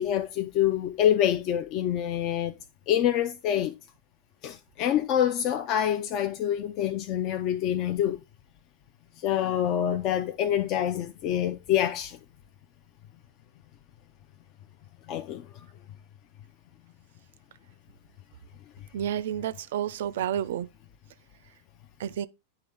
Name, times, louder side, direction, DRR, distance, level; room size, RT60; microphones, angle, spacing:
voice 1, 0.0-2.6 2.9-3.7 4.4-8.2 9.2-12.2 15.1-15.5, left 10 dB, 40° left, 0.4 m, -26 dB
voice 2, 18.9-20.7 22.0-22.3, right 10 dB, 55° right, 0.4 m, -30 dB
10.0 x 3.3 x 3.4 m
figure-of-eight pair, 90°, 0 cm